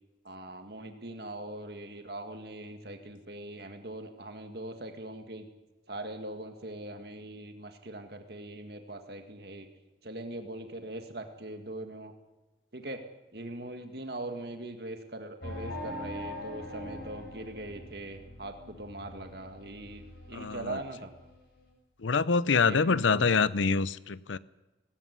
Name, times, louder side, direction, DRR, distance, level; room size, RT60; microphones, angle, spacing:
voice 1, 0.2-5.5 5.9-9.7 10.0-12.1 12.7-13.0 13.3-21.1 22.6-23.4, right 1 dB, 55° right, 6 dB, 1.9 m, -41 dB
sound 1, 15.4-21.7, left 1 dB, 55° left, 7.8 m, -43 dB
voice 2, 20.3-20.8 22.0-24.4, left 4 dB, 90° left, 18 dB, 0.7 m, -26 dB
18.5 x 17.0 x 9.7 m, 1.1 s
head